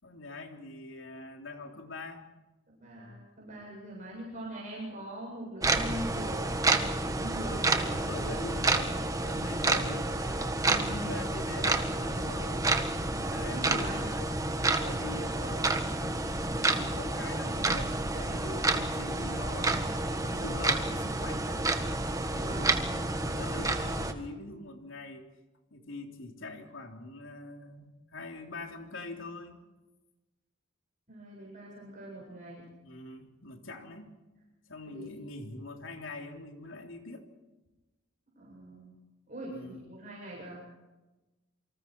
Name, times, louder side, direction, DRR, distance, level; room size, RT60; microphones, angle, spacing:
voice 1, 0.0-2.3 7.3-12.6 13.2-15.7 16.4-19.9 20.2-21.7 22.3-25.3 25.7-29.6 32.8-34.1 34.7-37.3 39.5-39.9, left 2 dB, 75° left, 3 dB, 3.5 m, -44 dB
voice 2, 2.7-8.4 13.2-14.1 22.3-22.8 31.1-32.6 34.9-35.1 38.3-38.9 39.3-40.6, right 1 dB, 40° right, -4 dB, 7.8 m, -42 dB
sound 1, 5.6-24.1, right 2 dB, 15° right, 1.7 m, -29 dB
28.0 x 25.5 x 4.7 m, 1.1 s
head